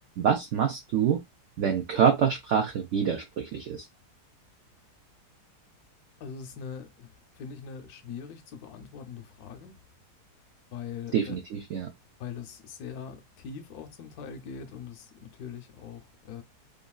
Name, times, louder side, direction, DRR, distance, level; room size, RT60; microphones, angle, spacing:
voice 1, 0.2-1.2 1.6-3.8 11.1-11.9, right 7 dB, 70° right, 0.7 m, -26 dB
voice 2, 6.2-9.7 10.7-11.4 12.2-16.4, left 7 dB, 70° left, 1.0 m, -42 dB
2.9 x 2.6 x 2.2 m
omnidirectional pair, 1.8 m